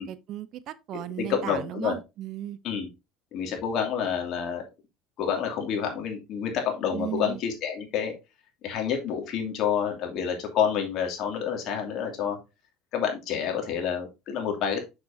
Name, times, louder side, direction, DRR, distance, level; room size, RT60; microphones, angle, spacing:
voice 1, 0.0-2.6 6.9-7.4, right 12 dB, 55° right, 0.6 m, -36 dB
voice 2, 1.2-2.0 2.6-2.9 3.3-4.6 5.2-8.2 8.6-12.4 12.9-14.8, left 7 dB, 55° left, 2.6 m, -28 dB
6.8 x 6.5 x 2.7 m
supercardioid pair, 100°, 0 cm